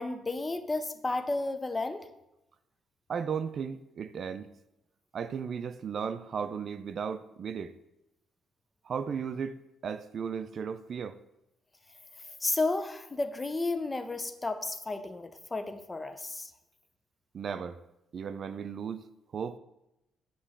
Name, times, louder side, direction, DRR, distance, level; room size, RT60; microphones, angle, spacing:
voice 1, 0.0-2.1 12.4-16.5, left 2 dB, 20° left, 0.6 m, -32 dB
voice 2, 3.1-4.5 5.1-7.8 8.8-11.2 17.3-17.8 18.1-19.1 19.3-19.6, right 6 dB, 55° right, 0.3 m, -35 dB
8.5 x 3.0 x 5.6 m
cardioid pair, 90°, 0 cm